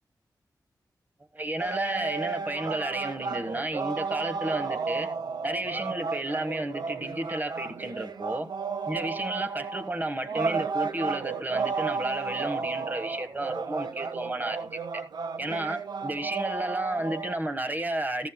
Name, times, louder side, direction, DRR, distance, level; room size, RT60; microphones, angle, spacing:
voice 1, 1.3-5.1 5.4-8.5 8.9-15.0 15.4-18.3, right 1 dB, 25° right, 1.4 m, -32 dB
sound 1, 1.6-17.4, right 5 dB, 85° right, 0.9 m, -33 dB
14.0 x 13.5 x 2.2 m
wide cardioid pair, 80°, 7 cm